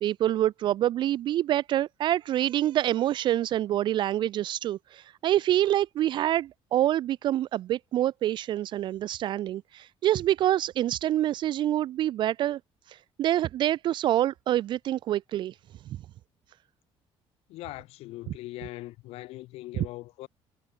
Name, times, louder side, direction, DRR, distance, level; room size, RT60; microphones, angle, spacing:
voice 1, 0.0-12.6 12.9-15.5, right 12 dB, 50° right, 0.5 m, -26 dB
voice 2, 17.5-20.3, left 18 dB, 80° left, 0.6 m, -41 dB
cardioid pair, 165°, 10 cm